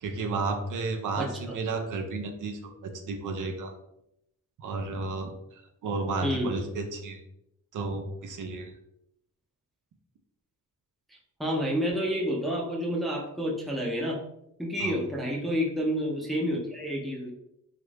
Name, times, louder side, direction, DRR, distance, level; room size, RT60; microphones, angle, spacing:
voice 1, 0.0-3.7 4.6-7.2 7.7-8.7 14.8-15.0, right 3 dB, 75° right, 5 dB, 0.5 m, -32 dB
voice 2, 1.2-1.5 6.2-6.5 11.4-14.2 14.6-17.3, equal, ahead, -3 dB, 0.5 m, -29 dB
3.0 x 2.4 x 3.2 m, 0.81 s
wide cardioid pair, 155°, 31 cm